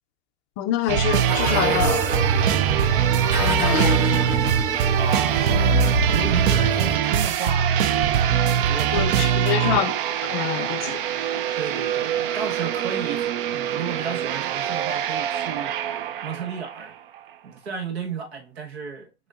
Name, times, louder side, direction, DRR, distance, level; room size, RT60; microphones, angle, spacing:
voice 1, 0.6-2.1 3.4-4.3 8.9-11.3, left 12 dB, 30° left, 0.4 m, -27 dB
sound 1, 0.9-16.9 17.2-17.3, right 9 dB, 55° right, 0.5 m, -23 dB
sound 2, 1.3-7.0, right 1 dB, 15° right, 1.7 m, -26 dB
voice 2, 5.0-7.7 8.3-9.4 11.5-13.3 13.5-15.9 16.2-16.9 17.4-19.3, right 6 dB, 80° right, 1.5 m, -33 dB
4.9 x 3.0 x 2.4 m
hypercardioid pair, 135°, 31 cm